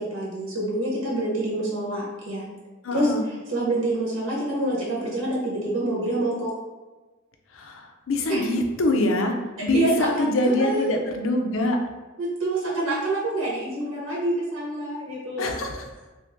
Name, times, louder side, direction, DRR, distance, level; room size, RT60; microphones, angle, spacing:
voice 1, 0.0-2.4 2.9-3.1 3.5-6.5 8.3-8.4 9.6-10.9 12.2-15.5, right 1 dB, 85° right, -5 dB, 1.0 m, -27 dB
voice 2, 2.8-3.2 7.5-9.3 9.6-11.8 15.4-15.9, left 1 dB, 80° left, 3 dB, 0.5 m, -24 dB
3.1 x 2.6 x 3.5 m, 1.2 s
head